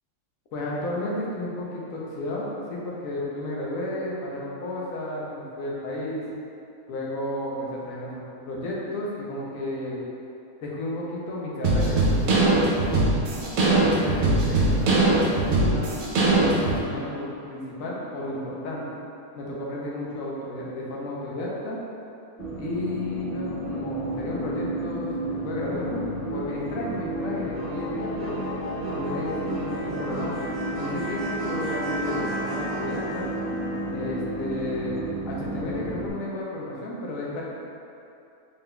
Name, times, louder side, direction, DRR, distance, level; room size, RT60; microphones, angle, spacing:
voice 1, 0.5-6.2 6.9-10.0 10.6-13.1 13.6-18.9 19.4-21.8 22.6-25.1 25.4-26.0 26.3-28.4 28.9-30.5 30.7-33.2 33.9-35.0 35.2-37.4, left 1 dB, 70° left, -4 dB, 1.1 m, -32 dB
sound 1, 11.6-16.8, right 2 dB, 70° right, 1.1 m, -21 dB
sound 2, 22.4-36.1, right 1 dB, 40° right, 1.1 m, -31 dB
3.9 x 3.9 x 2.2 m, 2.7 s
omnidirectional pair, 1.5 m